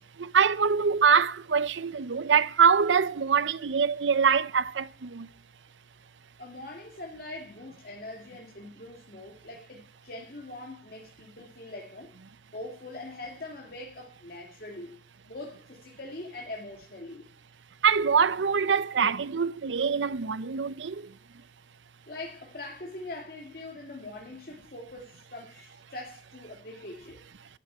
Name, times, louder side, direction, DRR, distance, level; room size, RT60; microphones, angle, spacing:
voice 1, 0.2-5.3 17.8-21.1, right 6 dB, 90° right, 0.6 m, -24 dB
voice 2, 6.4-12.1 12.5-15.0 15.3-17.3 22.1-27.2, left 2 dB, 55° left, 2.4 m, -42 dB
13.5 x 6.7 x 8.7 m
head